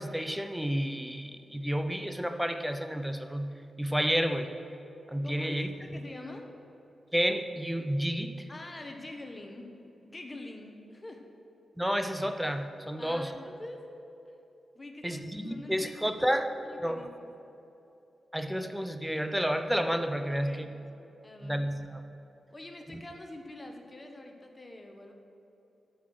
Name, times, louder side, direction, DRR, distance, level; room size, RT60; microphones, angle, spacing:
voice 1, 0.0-3.5 3.8-4.5 5.1-5.7 7.1-8.3 11.8-13.3 15.0-16.5 16.8-17.1 18.3-20.7 21.4-22.0, equal, 5° right, 8 dB, 0.5 m, -30 dB
voice 2, 5.2-6.5 8.5-9.7 10.1-11.2 13.0-13.9 14.7-17.3 20.3-20.6 21.2-21.6 22.5-25.1, left 2 dB, 20° left, 3 dB, 1.0 m, -45 dB
13.5 x 5.7 x 6.3 m, 2.9 s
wide cardioid pair, 155°, 0 cm